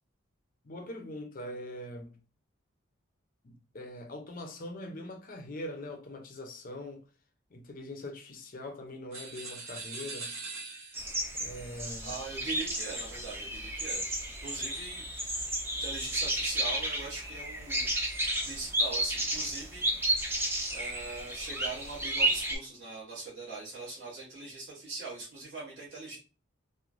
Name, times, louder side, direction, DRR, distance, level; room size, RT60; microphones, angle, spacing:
voice 1, 0.6-2.2 3.4-7.0 7.5-10.4 11.4-12.2, left 1 dB, 40° left, 0.5 m, -42 dB
sound 1, 9.1-11.3, right 3 dB, 85° right, 0.8 m, -42 dB
sound 2, 10.9-22.6, right 1 dB, 10° right, 0.4 m, -32 dB
voice 2, 12.0-14.0 14.4-17.9 18.4-20.4 20.7-26.2, right 3 dB, 60° right, 1.0 m, -41 dB
3.0 x 2.1 x 2.4 m
head